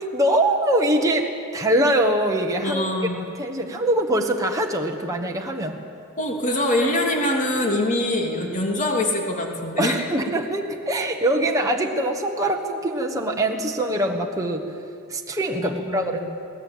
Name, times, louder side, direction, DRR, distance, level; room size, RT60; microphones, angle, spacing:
voice 1, 0.0-2.8 3.2-5.8 9.8-14.6 15.1-16.2, right 1 dB, 15° right, 1 dB, 1.4 m, -23 dB
voice 2, 2.6-3.2 6.2-10.0 15.6-16.2, left 1 dB, 35° left, 1 dB, 3.0 m, -24 dB
21.5 x 18.5 x 8.7 m, 2.4 s
head